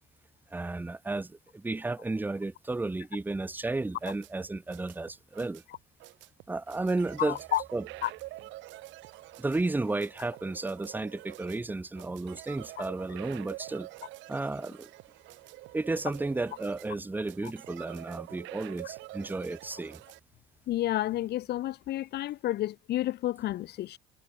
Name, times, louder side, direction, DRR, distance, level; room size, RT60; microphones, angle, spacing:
voice 1, 0.5-5.6 6.5-7.4 7.7-7.8 9.4-13.9 14.3-14.9 15.7-20.0, right 2 dB, 10° right, 1.3 m, -33 dB
sound 1, 4.0-20.2, right 19 dB, 80° right, 7.4 m, -47 dB
voice 2, 7.2-7.6 8.0-8.1 20.7-24.0, left 14 dB, 60° left, 2.0 m, -30 dB
cardioid pair, 135°, 19 cm